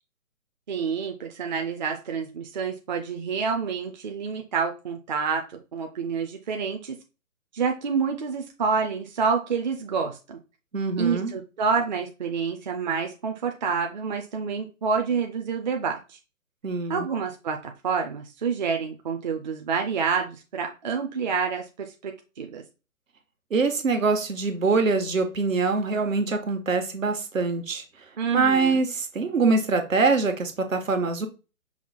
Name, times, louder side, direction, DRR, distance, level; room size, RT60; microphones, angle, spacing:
voice 1, 0.7-5.5 5.7-7.0 7.5-10.4 11.0-16.2 16.9-22.6 28.2-28.8, right 5 dB, 35° right, 4 dB, 0.6 m, -28 dB
voice 2, 10.7-11.3 16.6-17.1 23.5-27.8 28.3-31.3, right 4 dB, 70° right, 6 dB, 1.4 m, -24 dB
5.7 x 2.2 x 4.1 m, 0.31 s
figure-of-eight pair, 140°, 41 cm